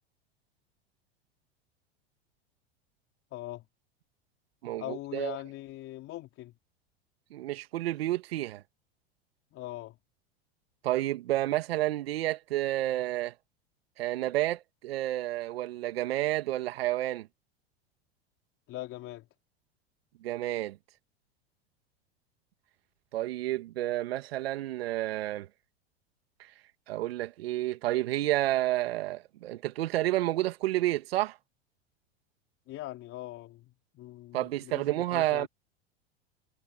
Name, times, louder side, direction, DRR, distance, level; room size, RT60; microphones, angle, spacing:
voice 1, 3.3-3.6 4.8-6.5 9.5-10.0 18.7-19.3 32.7-35.5, left 16 dB, 45° left, 4.1 m, -41 dB
voice 2, 4.6-5.4 7.3-8.6 10.8-13.3 14.0-17.3 20.2-20.8 23.1-25.5 26.9-31.4 34.3-35.5, right 15 dB, 70° right, 1.9 m, -30 dB
hypercardioid pair, 90°, 31 cm